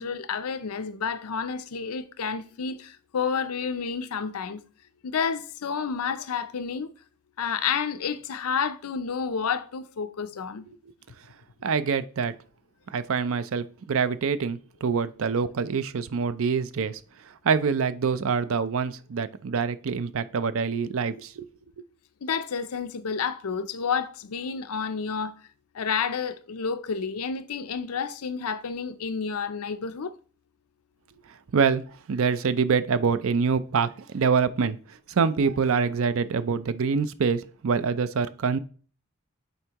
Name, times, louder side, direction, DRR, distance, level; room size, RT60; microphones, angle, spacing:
voice 1, 0.0-4.6 5.0-6.9 7.4-10.6 22.2-25.3 25.7-30.1, left 6 dB, 85° left, 0.6 m, -30 dB
voice 2, 11.6-12.3 12.9-17.0 17.4-21.5 31.5-38.6, right 5 dB, 65° right, 0.5 m, -25 dB
7.9 x 4.5 x 2.9 m
head